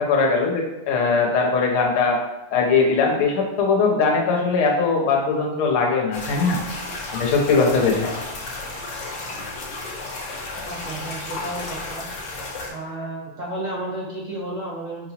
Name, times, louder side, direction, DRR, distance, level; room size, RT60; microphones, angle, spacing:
voice 1, 0.0-2.2 2.5-6.6 7.1-8.1, left 4 dB, 80° left, 0 dB, 1.6 m, -20 dB
sound 1, 6.1-12.7, left 2 dB, 60° left, 1.4 m, -33 dB
voice 2, 10.6-12.1 12.7-15.1, right 1 dB, 35° right, -7 dB, 0.7 m, -32 dB
5.3 x 2.9 x 2.8 m, 1.0 s
omnidirectional pair, 2.4 m